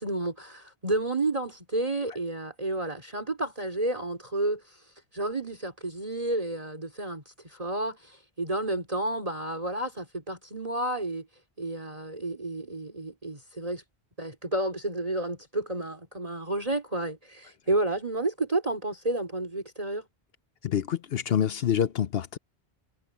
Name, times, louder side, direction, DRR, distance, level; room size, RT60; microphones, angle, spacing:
voice 1, 0.0-11.3 11.6-13.8 14.2-20.1, right 2 dB, 35° right, 3.7 m, -31 dB
voice 2, 20.6-22.4, left 9 dB, 65° left, 0.9 m, -26 dB
omnidirectional pair, 1.1 m